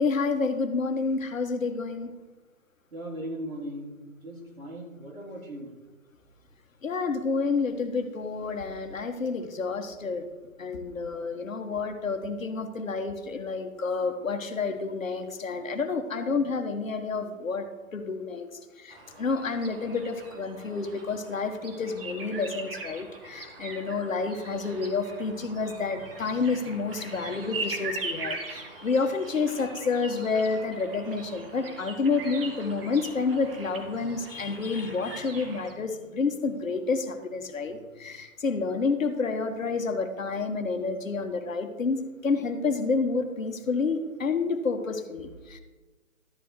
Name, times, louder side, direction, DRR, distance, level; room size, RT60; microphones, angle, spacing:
voice 1, 0.0-2.1 6.8-10.3 10.6-17.7 17.9-18.5 18.8-45.6, left 4 dB, 65° left, 6 dB, 1.4 m, -29 dB
voice 2, 2.9-5.8, equal, 75° right, -3 dB, 3.5 m, -38 dB
sound 1, 18.9-35.7, right 3 dB, 40° right, 1.6 m, -41 dB
12.5 x 9.2 x 3.1 m, 1.2 s
figure-of-eight pair, 145°, 42 cm